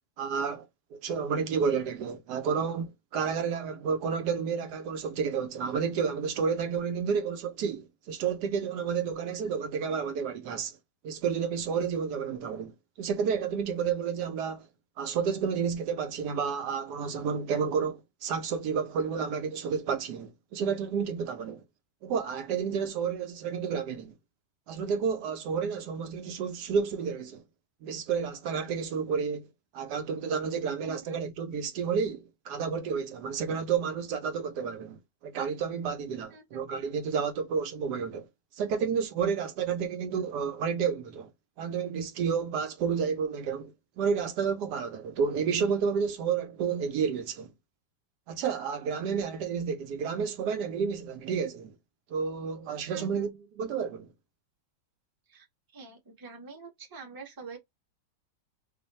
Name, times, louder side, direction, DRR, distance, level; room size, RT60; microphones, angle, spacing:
voice 1, 0.2-10.8 11.0-12.7 13.0-14.7 15.0-21.6 22.0-24.1 24.7-27.4 27.8-29.5 29.7-38.3 38.6-41.3 41.6-47.5 48.3-51.7 52.1-54.1, right 6 dB, 75° right, 1.1 m, -31 dB
voice 2, 30.8-31.2 36.3-36.6 52.9-53.3 55.3-55.5 55.7-57.6, right 4 dB, 20° right, 0.7 m, -46 dB
2.6 x 2.5 x 3.9 m
omnidirectional pair, 1.8 m